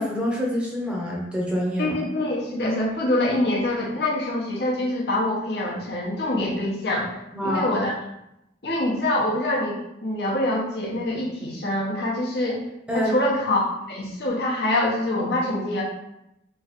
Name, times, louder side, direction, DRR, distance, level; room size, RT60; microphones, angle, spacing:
voice 1, 0.0-2.0 7.3-7.7 12.9-13.1, equal, 5° right, -3 dB, 0.7 m, -26 dB
voice 2, 1.8-7.1 7.4-7.9 8.6-12.6 12.9-15.8, left 1 dB, 60° left, -4 dB, 0.8 m, -25 dB
3.1 x 2.5 x 4.1 m, 0.85 s
head